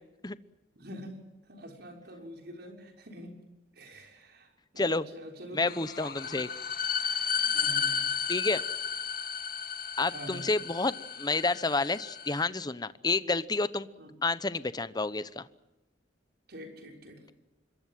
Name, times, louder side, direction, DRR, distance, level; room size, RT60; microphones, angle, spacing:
voice 1, 0.8-1.1 1.4-3.3 3.7-5.9 6.2-6.4 7.4-8.0 10.1-10.5 14.0-14.1 16.5-17.2, equal, 60° right, 3 dB, 6.3 m, -46 dB
voice 2, 5.5-6.5 8.3-8.6 10.0-13.9 14.2-15.5, left 3 dB, 20° left, 15 dB, 0.9 m, -29 dB
sound 1, 5.7-12.4, left 7 dB, 55° left, 2.3 m, -33 dB
26.5 x 23.0 x 7.7 m, 1.0 s
head